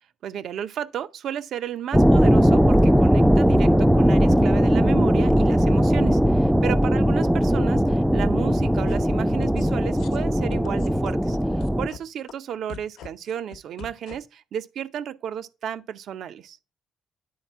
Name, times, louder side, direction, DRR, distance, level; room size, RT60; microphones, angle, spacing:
voice 1, 0.2-16.6, right 9 dB, 70° right, 0.6 m, -33 dB
sound 1, 1.9-11.9, equal, ahead, 0.4 m, -19 dB
sound 2, 8.9-9.0 9.3-9.7 10.0-10.2 10.5-12.0 12.3-12.4 12.7-14.1, left 7 dB, 90° left, 0.9 m, -41 dB
9.5 x 4.1 x 4.4 m
cardioid pair, 90°, 0 cm